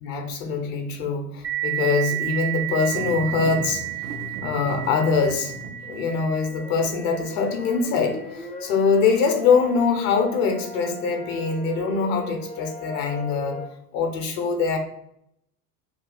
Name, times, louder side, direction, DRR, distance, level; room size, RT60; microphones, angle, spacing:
voice 1, 0.0-3.8 4.4-5.5 5.9-13.6 13.9-14.8, left 5 dB, 55° left, 4 dB, 0.9 m, -23 dB
sound 1, 1.4-10.7, right 15 dB, 85° right, 1.0 m, -33 dB
sound 2, 2.9-6.4, right 2 dB, 40° right, 0.5 m, -37 dB
sound 3, 6.0-13.7, left 2 dB, 15° left, 0.6 m, -37 dB
2.7 x 2.3 x 3.9 m, 0.75 s
figure-of-eight pair, 75°, 47 cm